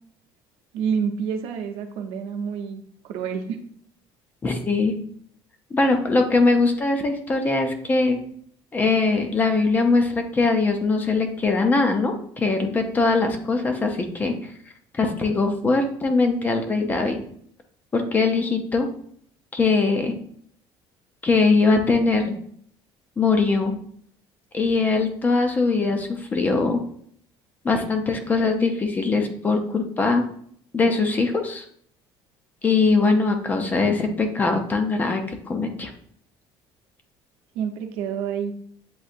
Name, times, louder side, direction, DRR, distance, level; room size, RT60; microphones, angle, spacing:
voice 1, 0.7-3.6 37.5-38.5, right 7 dB, 75° right, 5 dB, 0.7 m, -28 dB
voice 2, 4.4-5.0 5.7-8.2 8.7-14.5 14.9-17.2 17.9-18.9 19.5-20.1 21.2-22.4 23.2-23.7 24.5-26.8 27.6-30.2 30.7-31.7 32.6-35.9, left 3 dB, 15° left, 5 dB, 0.4 m, -21 dB
7.7 x 2.7 x 2.5 m, 0.62 s
cardioid pair, 175°, 10 cm